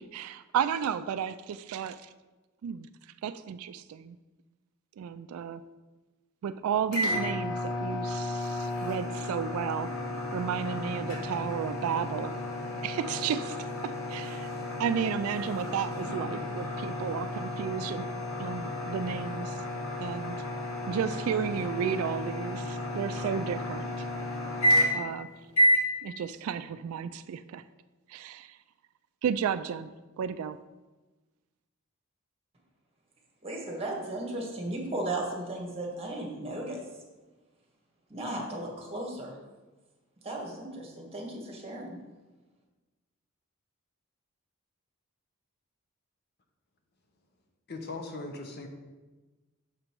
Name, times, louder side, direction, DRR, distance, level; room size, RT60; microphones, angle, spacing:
voice 1, 0.0-2.1 2.6-2.9 3.2-4.2 5.0-5.6 6.4-9.9 10.3-12.3 12.8-14.5 14.8-18.1 18.4-19.6 20.0-20.4 20.9-24.1 24.9-25.3 26.0-27.6 28.1-28.6 29.2-30.6, right 8 dB, 75° right, 14 dB, 0.3 m, -33 dB
sound 1, 6.9-25.2 25.5-25.9, left 1 dB, 70° left, 1.8 m, -31 dB
voice 2, 33.4-36.8 38.1-39.4 40.2-42.0, right 1 dB, 30° right, 0 dB, 1.4 m, -35 dB
voice 3, 47.7-48.7, left 3 dB, 50° left, 4 dB, 0.9 m, -39 dB
6.6 x 5.2 x 4.5 m, 1.2 s
head